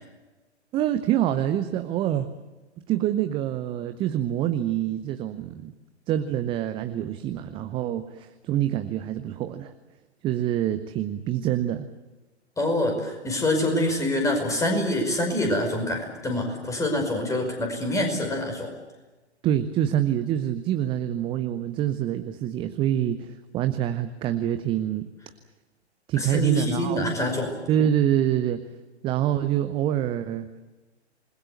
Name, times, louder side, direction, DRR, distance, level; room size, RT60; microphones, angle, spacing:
voice 1, 0.7-2.3 2.9-5.7 6.1-9.7 10.2-11.9 19.4-25.1 26.1-27.1 27.7-28.6 29.0-30.6, right 11 dB, 15° right, 10 dB, 0.7 m, -26 dB
voice 2, 12.6-18.7 26.2-27.5, left 1 dB, 10° left, 4 dB, 5.4 m, -25 dB
27.5 x 21.0 x 7.9 m, 1.2 s
figure-of-eight pair, 120°, 34 cm